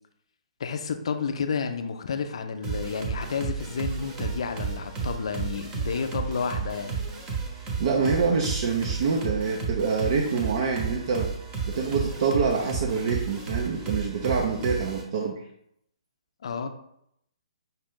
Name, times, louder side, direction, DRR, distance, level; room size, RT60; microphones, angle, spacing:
voice 1, 0.6-7.0 16.4-16.7, left 5 dB, 60° left, 7 dB, 0.5 m, -31 dB
sound 1, 2.6-15.0, right 5 dB, 25° right, 0.9 m, -32 dB
voice 2, 7.8-11.3 11.7-15.4, right 5 dB, 50° right, 0 dB, 0.6 m, -26 dB
5.6 x 2.4 x 3.6 m, 0.75 s
figure-of-eight pair, 130°, 4 cm